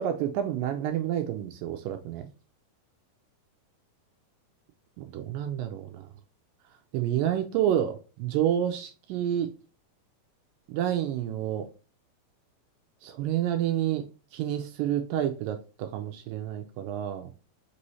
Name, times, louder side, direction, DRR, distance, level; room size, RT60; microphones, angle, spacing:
voice 1, 0.0-2.3 5.0-6.1 6.9-9.5 10.7-11.7 13.0-14.1 14.3-17.3, right 10 dB, 80° right, 2.0 m, -29 dB
5.3 x 3.1 x 2.7 m
omnidirectional pair, 4.2 m